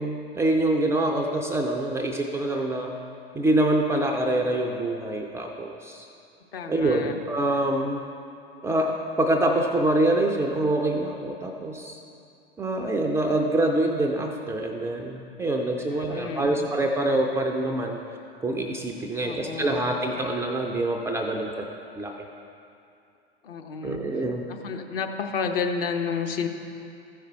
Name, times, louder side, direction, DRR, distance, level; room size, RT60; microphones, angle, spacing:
voice 1, 0.0-2.9 3.3-6.1 6.7-8.0 8.6-12.0 12.6-18.0 18.4-21.7 22.0-22.3 23.8-24.4, right 1 dB, 10° right, 1 dB, 0.3 m, -25 dB
voice 2, 6.5-7.2 15.9-16.7 19.2-19.8 23.4-26.5, left 5 dB, 60° left, 4 dB, 0.9 m, -31 dB
14.5 x 5.0 x 4.5 m, 2.6 s
figure-of-eight pair, 85°, 31 cm